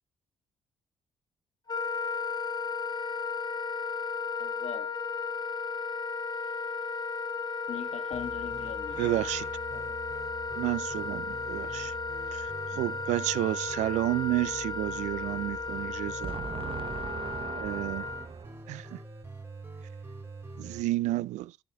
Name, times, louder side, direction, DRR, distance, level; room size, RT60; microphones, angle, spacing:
Wind instrument woodwind instrument, 1.7-18.3, left 4 dB, 35° left, 1.5 m, -35 dB
voice 1, 4.4-4.9 6.4-6.6 7.7-9.1 9.7-10.2, left 9 dB, 60° left, 1.4 m, -41 dB
sound 1, 8.1-20.8, right 2 dB, 20° right, 5.0 m, -45 dB
voice 2, 9.0-9.5 10.6-11.9 12.3-16.3 17.6-18.0 18.7-19.0 20.6-21.5, right 17 dB, 70° right, 0.4 m, -31 dB
voice 3, 16.2-18.8, right 6 dB, 45° right, 0.9 m, -39 dB
14.0 x 7.8 x 2.3 m
hypercardioid pair, 45°, 13 cm